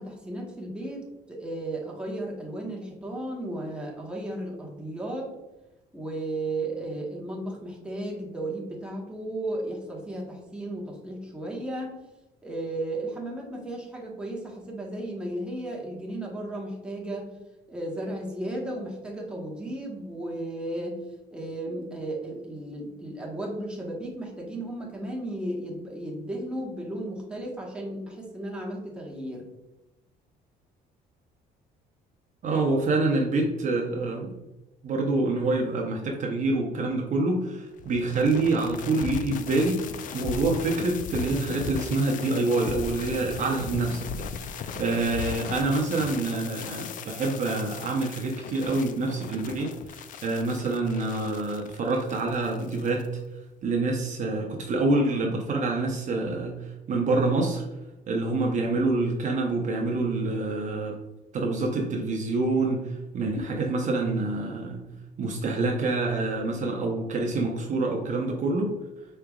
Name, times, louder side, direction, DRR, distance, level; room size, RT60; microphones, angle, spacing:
voice 1, 0.0-5.3 5.9-11.9 12.4-17.3 17.7-21.0 21.3-29.5, right 1 dB, 5° right, -3 dB, 1.1 m, -34 dB
voice 2, 32.4-34.3 34.8-39.8 40.1-44.1 44.4-53.0 53.6-57.6 58.1-60.9 61.3-64.8 65.2-68.7, right 2 dB, 45° right, 1 dB, 0.7 m, -26 dB
sound 1, 37.8-53.1, left 6 dB, 50° left, 0.4 m, -37 dB
4.8 x 3.3 x 2.3 m, 1.0 s
cardioid pair, 110°, 17 cm